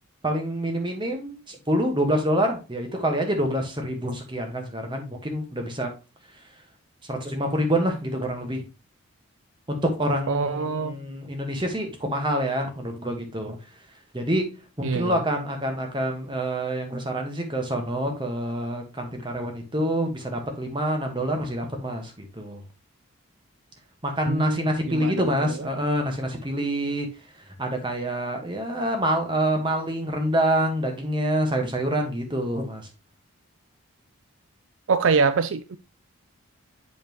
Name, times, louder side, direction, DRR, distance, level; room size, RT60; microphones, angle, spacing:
voice 1, 0.2-5.9 7.1-8.6 9.7-13.6 14.1-14.5 14.8-22.6 24.0-27.1 27.6-32.9, right 1 dB, 20° right, 1.4 m, -26 dB
voice 2, 10.3-11.0 14.8-15.2 24.3-25.3 34.9-35.8, right 5 dB, 65° right, 0.4 m, -24 dB
7.1 x 5.3 x 3.0 m
head